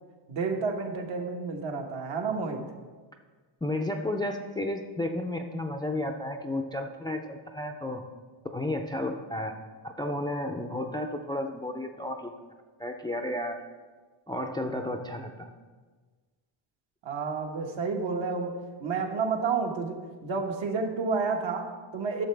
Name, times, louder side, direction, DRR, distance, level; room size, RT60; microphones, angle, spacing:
voice 1, 0.3-2.6 17.0-22.3, right 4 dB, 65° right, 2 dB, 1.3 m, -30 dB
voice 2, 3.6-8.0 8.4-9.6 9.8-12.3 12.8-13.6 14.3-15.5, left 1 dB, 10° left, 4 dB, 0.4 m, -32 dB
11.5 x 6.8 x 3.4 m, 1.4 s
cardioid pair, 110°, 49 cm